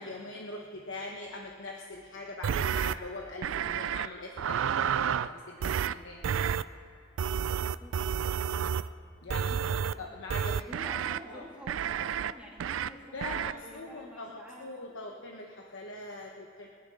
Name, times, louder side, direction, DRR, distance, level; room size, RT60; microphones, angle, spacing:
voice 1, 0.0-6.2 9.2-10.9 11.3-11.5 13.1-16.7, left 2 dB, 75° left, 1 dB, 1.1 m, -42 dB
sound 1, 2.4-3.0 3.4-4.1 4.4-5.3 5.6-5.9 6.2-6.6 7.2-8.9 9.3-9.9 10.3-11.2 11.7-12.3 12.6-12.9 13.2-13.5, right 8 dB, 75° right, 0.4 m, -30 dB
voice 2, 7.4-8.9 9.2-10.0 10.5-14.9, equal, 5° right, -4 dB, 2.5 m, -50 dB
28.0 x 10.5 x 3.8 m, 2.3 s
head